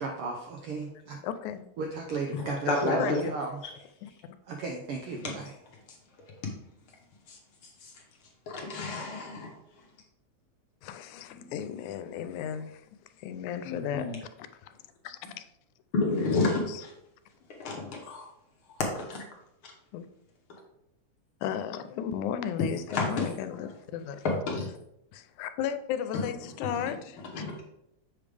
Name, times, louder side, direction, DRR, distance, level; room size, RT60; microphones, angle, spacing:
voice 1, 0.0-1.2 1.8-3.6 4.5-5.5, right 3 dB, 80° right, 1 dB, 1.2 m, -35 dB
voice 2, 1.2-1.7 3.0-3.2 4.0-4.1 10.8-12.9 13.2-14.1 14.6-14.7 15.0-15.5 16.1-16.8 19.9-20.1 21.4-24.2 25.1-27.2, left 9 dB, 90° left, 11 dB, 2.0 m, -35 dB
voice 3, 2.3-3.2 5.2-5.4 6.4-6.5 7.3-7.9 8.5-9.6 13.6-14.2 15.9-16.9 17.6-18.3 18.8-19.2 19.6-19.7 22.9-23.3 24.2-24.7 26.1-26.2 26.6-26.9 27.3-27.6, left 3 dB, 60° left, 0 dB, 1.5 m, -30 dB
7.3 x 5.1 x 3.3 m, 0.82 s
omnidirectional pair, 3.3 m